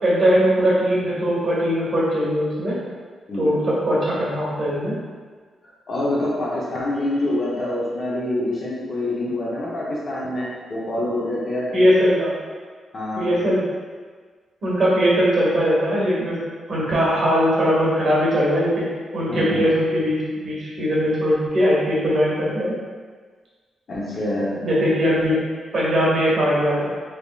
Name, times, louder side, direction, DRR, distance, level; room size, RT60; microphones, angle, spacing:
voice 1, 0.0-2.8 3.4-5.0 11.7-12.3 13.1-13.6 14.6-16.4 16.7-18.8 19.1-20.2 20.4-22.7 24.6-25.4 25.7-26.9, equal, 45° right, -7 dB, 1.3 m, -20 dB
voice 2, 3.3-3.6 5.6-11.8 12.9-13.3 19.3-19.7 23.9-24.6, left 1 dB, 45° left, -6 dB, 0.7 m, -26 dB
3.5 x 3.5 x 2.4 m, 1.5 s
wide cardioid pair, 145°, 0 cm